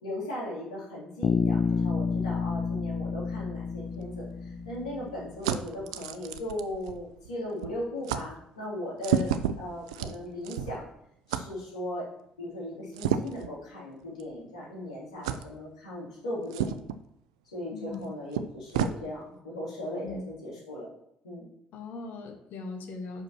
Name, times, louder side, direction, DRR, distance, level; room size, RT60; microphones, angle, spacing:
voice 1, 0.0-10.9 11.3-12.1 12.4-16.8 17.5-20.9 21.2-21.4, left 1 dB, 90° left, -7 dB, 3.3 m, -37 dB
Bass guitar, 1.2-5.3, left 5 dB, 45° left, 0.4 m, -29 dB
sound 1, 3.9-7.4 7.6-7.8 8.0-8.3 9.0-10.9 11.3-11.5 12.9-13.5 14.2-14.3 15.2-15.4 16.5-17.0 17.9-18.0 18.3-19.0, right 9 dB, 85° right, 0.4 m, -31 dB
voice 2, 17.7-18.1 20.0-20.2 21.7-23.2, left 3 dB, 65° left, 4 dB, 1.4 m, -39 dB
5.6 x 5.1 x 6.2 m, 0.74 s
hypercardioid pair, 50°, 3 cm